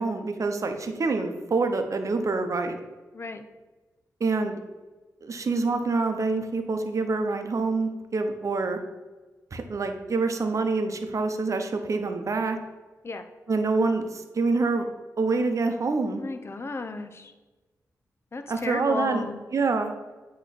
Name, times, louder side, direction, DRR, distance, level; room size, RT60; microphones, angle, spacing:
voice 1, 0.0-2.8 4.2-4.6 5.2-8.8 9.5-12.6 13.5-14.9 15.2-16.2 18.5-19.3 19.5-19.9, right 3 dB, 55° right, 6 dB, 0.8 m, -26 dB
voice 2, 16.2-17.3 18.3-19.4, left 3 dB, 40° left, 8 dB, 0.6 m, -33 dB
8.2 x 3.1 x 4.1 m, 1.2 s
cardioid pair, 65°, 7 cm